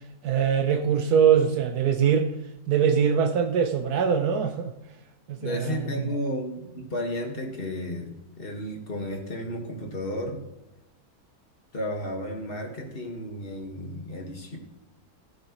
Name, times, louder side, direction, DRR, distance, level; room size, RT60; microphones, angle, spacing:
voice 1, 0.2-2.3 2.7-4.7 5.3-6.0, right 7 dB, 80° right, 7 dB, 1.3 m, -23 dB
voice 2, 5.4-10.4 11.7-14.6, left 1 dB, 35° left, 2 dB, 1.7 m, -33 dB
16.0 x 8.7 x 3.0 m, 0.99 s
omnidirectional pair, 1.7 m